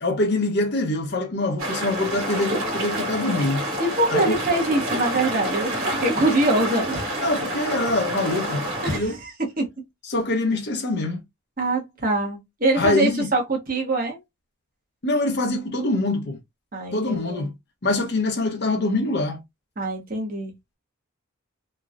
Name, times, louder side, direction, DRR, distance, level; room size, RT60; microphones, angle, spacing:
voice 1, 0.0-3.6 4.1-4.4 7.2-8.6 8.9-9.1 10.1-11.2 12.8-13.3 15.0-16.4 16.9-17.5 17.8-19.4, left 2 dB, 50° left, 0.7 m, -24 dB
sound 1, 1.6-9.0, right 1 dB, 70° right, 1.5 m, -28 dB
voice 2, 3.8-7.1 8.8-9.6 11.6-14.2 16.7-17.5 19.8-20.5, right 2 dB, 40° right, 1.0 m, -24 dB
3.0 x 2.1 x 2.4 m
head